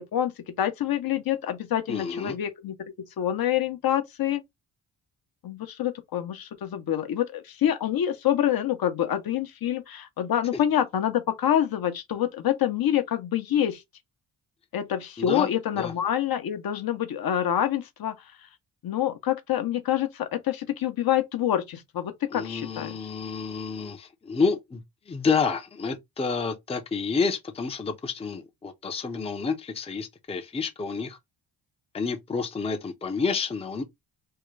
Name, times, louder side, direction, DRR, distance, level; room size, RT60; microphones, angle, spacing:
voice 1, 0.0-2.7 3.2-4.4 5.4-13.8 14.7-18.2 18.8-22.9, left 10 dB, 55° left, 0.7 m, -26 dB
voice 2, 1.9-2.3 15.2-15.5 15.8-15.9 22.3-31.2 31.9-33.8, left 5 dB, 15° left, 0.5 m, -29 dB
3.6 x 2.1 x 3.1 m
cardioid pair, 95°, 42 cm